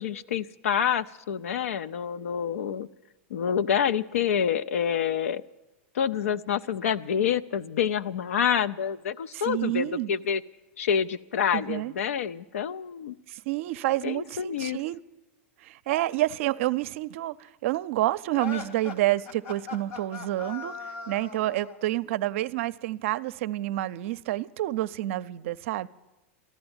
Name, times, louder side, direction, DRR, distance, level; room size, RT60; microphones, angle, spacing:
voice 1, 0.0-2.9 3.3-5.4 5.9-10.4 10.8-13.1 14.0-14.8, left 8 dB, 85° left, 0.5 m, -27 dB
voice 2, 9.3-10.1 11.5-11.9 13.3-15.0 15.6-25.9, right 16 dB, 70° right, 0.5 m, -29 dB
sound 1, 18.3-21.8, left 6 dB, 70° left, 2.6 m, -39 dB
14.5 x 11.0 x 8.8 m
hypercardioid pair, 120°, 7 cm